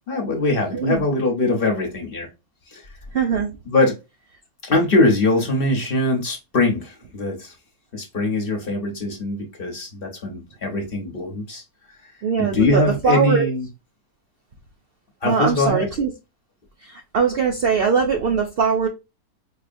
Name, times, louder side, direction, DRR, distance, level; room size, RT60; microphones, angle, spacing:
voice 1, 0.1-2.3 2.7-2.9 3.7-3.9 4.6-7.5 7.9-11.6 12.4-13.7 15.2-15.9, left 2 dB, 45° left, 1 dB, 0.9 m, -22 dB
voice 2, 0.7-1.0 3.1-3.5 12.2-13.5 15.2-16.1 16.8-18.9, right 6 dB, 90° right, 3 dB, 0.5 m, -21 dB
4.7 x 2.8 x 2.5 m, 0.26 s
omnidirectional pair, 1.6 m